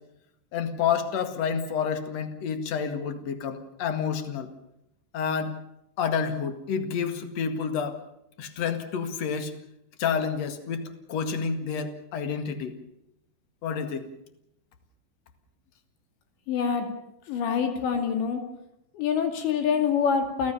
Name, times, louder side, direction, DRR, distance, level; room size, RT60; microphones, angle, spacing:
voice 1, 0.5-4.5 5.1-5.5 6.0-8.0 8.4-9.6 10.0-10.8 11.1-12.7 13.6-14.1, left 6 dB, 50° left, 9 dB, 2.2 m, -29 dB
voice 2, 16.5-16.9 17.3-18.4 18.9-20.5, left 6 dB, 70° left, 6 dB, 4.8 m, -25 dB
29.5 x 16.0 x 7.0 m, 0.81 s
omnidirectional pair, 5.5 m